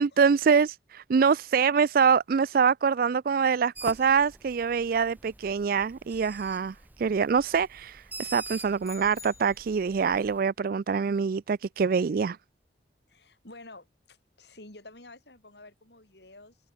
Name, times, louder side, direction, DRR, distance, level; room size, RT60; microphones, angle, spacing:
voice 1, 0.0-12.4, right 6 dB, 55° right, 0.4 m, -25 dB
Bird, 3.8-10.4, right 2 dB, 10° right, 1.1 m, -46 dB
sound 1, 8.8-9.9, left 6 dB, 20° left, 3.8 m, -48 dB
voice 2, 13.1-16.6, left 2 dB, 70° left, 6.1 m, -50 dB
head